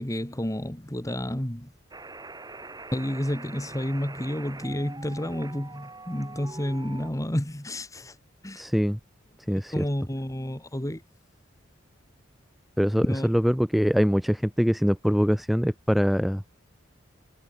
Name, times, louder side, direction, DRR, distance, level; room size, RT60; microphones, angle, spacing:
voice 1, 0.0-1.7 2.9-8.2 8.4-8.6 9.7-11.0 13.1-13.3, equal, 15° left, 2.1 m, -30 dB
sound 1, 1.9-7.1, right 3 dB, 20° right, 5.4 m, -43 dB
voice 2, 8.6-9.0 9.5-9.8 12.8-16.4, equal, ahead, 0.5 m, -23 dB
head